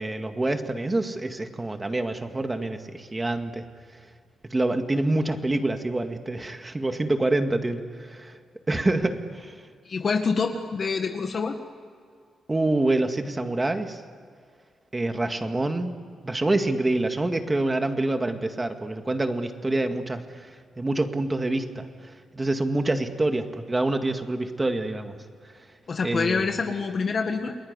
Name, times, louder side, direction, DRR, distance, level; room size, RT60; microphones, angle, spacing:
voice 1, 0.0-3.7 4.5-8.4 8.7-9.7 12.5-14.0 14.9-16.0 16.2-20.5 20.8-25.2 26.0-26.4, right 2 dB, 20° right, 6 dB, 2.0 m, -26 dB
voice 2, 9.8-11.6 25.9-27.6, left 5 dB, 45° left, 5 dB, 1.7 m, -26 dB
29.5 x 21.0 x 9.7 m, 2.1 s
cardioid pair, 120°, 0 cm